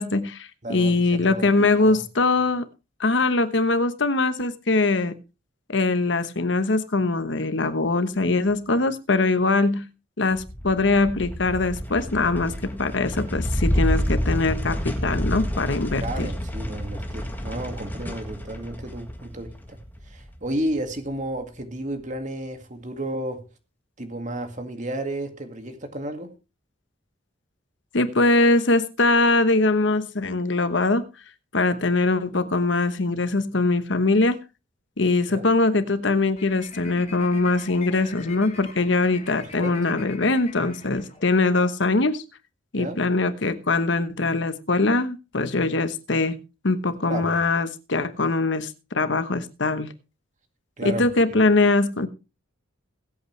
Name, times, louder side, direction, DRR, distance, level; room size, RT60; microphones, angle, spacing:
voice 1, 0.0-2.6 3.0-5.1 5.7-9.9 10.2-16.3 27.9-31.1 31.5-34.4 35.0-42.2 42.7-46.4 46.6-49.9 50.8-52.1, left 3 dB, 65° left, 1.1 m, -22 dB
voice 2, 0.6-1.5 1.8-2.0 16.0-19.8 20.0-23.4 24.0-26.3 35.3-35.5 39.6-39.7 42.7-43.0 47.1-47.4 50.8-51.4, right 1 dB, 40° right, 2.1 m, -32 dB
sound 1, 10.3-20.9, equal, 10° left, 1.7 m, -29 dB
sound 2, 36.4-41.6, left 4 dB, 35° left, 3.3 m, -43 dB
21.0 x 8.4 x 3.3 m
head